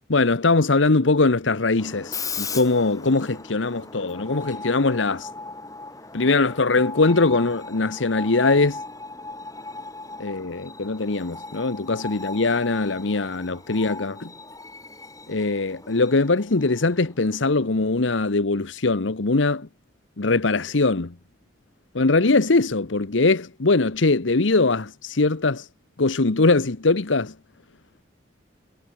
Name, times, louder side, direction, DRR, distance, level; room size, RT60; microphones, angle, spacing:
voice 1, 0.1-5.3 6.1-8.8 10.2-14.3 15.3-19.7 20.2-21.1 21.9-25.6 26.0-27.3, left 3 dB, 80° left, 1.1 m, -21 dB
Screech, 1.8-18.4, left 3 dB, 20° left, 5.1 m, -38 dB
head